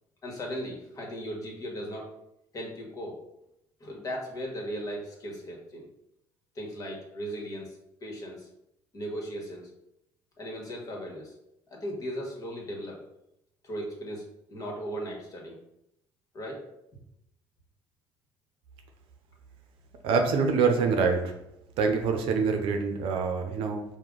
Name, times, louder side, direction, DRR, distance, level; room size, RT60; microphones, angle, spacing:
voice 1, 0.2-2.1 2.5-3.2 3.8-5.9 6.5-8.5 8.9-9.7 10.4-11.3 11.7-13.0 13.6-15.6 16.3-16.6 16.9-17.0, equal, 40° left, -1 dB, 1.4 m, -37 dB
voice 2, 20.0-21.3 21.8-23.8, right 5 dB, 75° right, 4 dB, 0.6 m, -25 dB
4.7 x 2.2 x 3.8 m, 0.82 s
supercardioid pair, 85°, 9 cm